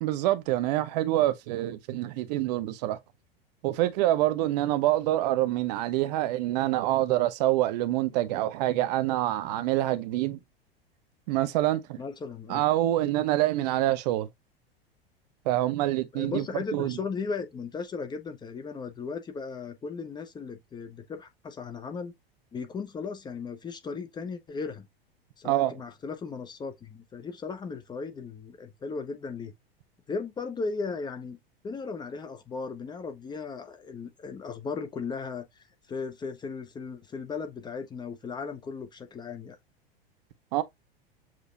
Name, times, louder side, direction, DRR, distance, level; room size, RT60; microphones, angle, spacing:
voice 1, 0.0-3.0 3.6-10.4 11.3-12.0 12.5-14.3 15.5-17.0 25.4-25.8 40.5-40.6, right 15 dB, 45° right, 0.6 m, -26 dB
voice 2, 12.0-12.6 16.1-22.1 22.5-24.9 25.4-29.5 30.1-31.4 31.6-39.6, left 4 dB, 15° left, 0.6 m, -36 dB
7.3 x 2.7 x 2.4 m
figure-of-eight pair, 90°, 30 cm